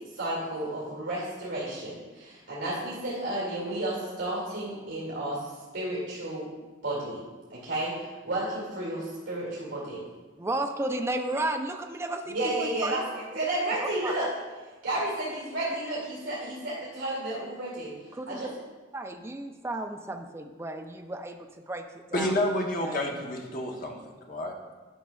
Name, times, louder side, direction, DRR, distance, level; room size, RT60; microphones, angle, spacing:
voice 1, 0.1-5.4 5.7-6.5 6.8-7.2 7.5-10.0 12.3-14.3 14.8-17.9 18.3-18.5, right 1 dB, 75° right, -6 dB, 2.4 m, -32 dB
voice 2, 10.4-13.0 14.0-14.3 18.1-18.5 18.9-21.4 21.7-21.8 22.1-22.4 22.8-23.1, right 2 dB, 15° right, 5 dB, 0.3 m, -33 dB
voice 3, 22.1-24.0 24.3-24.5, left 1 dB, 45° left, 1 dB, 1.0 m, -29 dB
11.5 x 6.1 x 2.3 m, 1.3 s
head